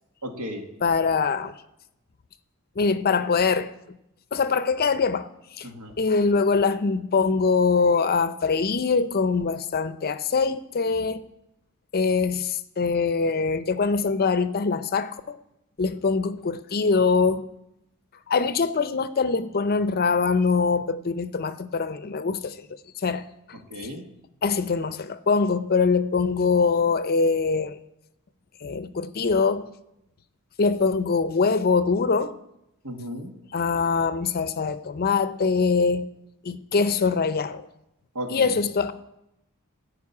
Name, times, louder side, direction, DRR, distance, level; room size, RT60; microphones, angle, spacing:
voice 1, 0.2-0.7 5.6-6.0 23.7-24.0 32.8-33.3 38.2-38.5, equal, 85° right, 1.9 m, -34 dB
voice 2, 0.8-1.5 2.8-4.0 4.3-5.3 5.6-5.7 6.0-11.2 11.9-15.4 15.8-17.5 18.3-22.7 23.0-23.2 24.4-27.8 28.6-29.7 30.6-32.4 33.5-36.1 36.4-37.7 38.3-38.9, left 4 dB, 45° left, 0.5 m, -23 dB
14.5 x 5.2 x 8.3 m
head